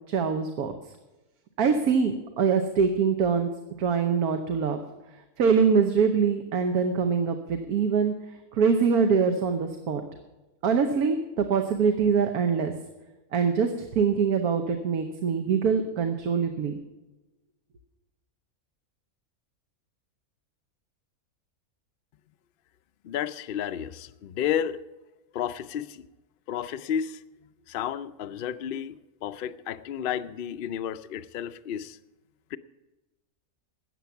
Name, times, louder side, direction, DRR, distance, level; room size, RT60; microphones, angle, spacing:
voice 1, 0.1-0.7 1.6-3.5 3.8-4.8 5.4-8.1 8.5-10.0 10.6-12.7 13.3-16.7, right 6 dB, 90° right, 6 dB, 1.5 m, -24 dB
voice 2, 23.0-24.8 25.3-26.1 26.5-27.2 27.7-29.0 29.2-32.0 32.5-32.6, left 9 dB, 65° left, 11 dB, 0.5 m, -31 dB
13.5 x 8.7 x 7.0 m, 1.1 s
omnidirectional pair, 1.5 m